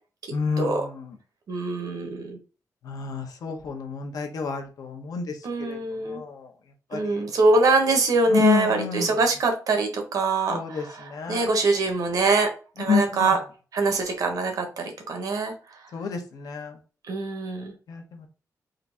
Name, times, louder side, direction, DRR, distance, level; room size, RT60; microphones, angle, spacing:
voice 1, 0.3-0.9 2.8-5.3 5.6-5.8 6.1-6.5 6.9-7.2 8.3-9.1 10.5-11.5 12.9-13.3 15.9-16.8 17.9-18.3, left 6 dB, 80° left, 4 dB, 0.9 m, -28 dB
voice 2, 1.5-2.4 5.4-6.2 6.9-12.5 12.8-13.4 13.7-15.5 17.1-17.7, right 3 dB, 75° right, 4 dB, 1.0 m, -24 dB
3.8 x 2.6 x 3.4 m, 0.35 s
wide cardioid pair, 140°, 6 cm